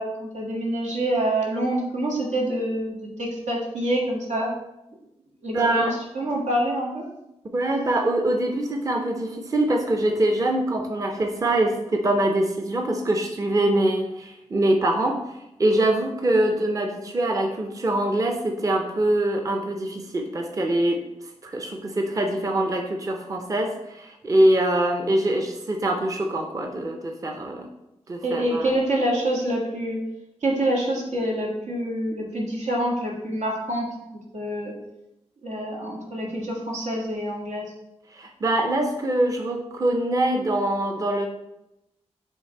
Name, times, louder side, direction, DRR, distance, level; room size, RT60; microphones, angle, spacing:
voice 1, 0.0-4.5 5.4-5.9 6.1-7.0 28.2-30.0 30.4-34.7 35.4-37.7, right 1 dB, 90° right, -2 dB, 1.6 m, -26 dB
voice 2, 5.5-5.9 7.5-15.2 15.6-21.0 21.4-27.7 28.1-28.7 38.1-41.3, right 1 dB, 30° right, 3 dB, 0.6 m, -24 dB
7.3 x 3.3 x 4.5 m, 0.88 s
wide cardioid pair, 165°, 12 cm